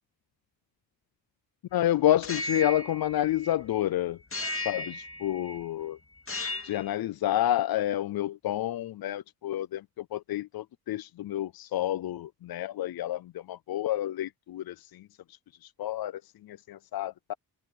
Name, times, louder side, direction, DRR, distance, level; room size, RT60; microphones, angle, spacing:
voice 1, 1.7-4.2 4.7-6.0 6.6-15.0 15.8-16.2 16.5-17.3, left 13 dB, 75° left, 0.5 m, -29 dB
sound 1, 2.1-3.8 4.3-5.6 6.2-6.9, left 2 dB, 35° left, 2.2 m, -36 dB
wide cardioid pair, 90°, 37 cm